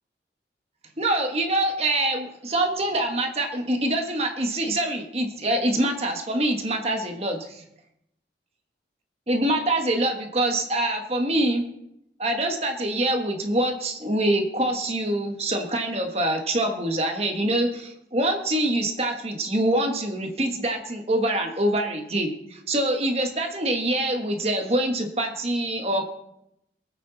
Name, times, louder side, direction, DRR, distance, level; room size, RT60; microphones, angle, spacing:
voice 1, 1.0-7.6 9.3-11.6 12.2-26.1, right 1 dB, 35° right, 3 dB, 1.6 m, -25 dB
23.5 x 8.6 x 4.2 m, 0.81 s
head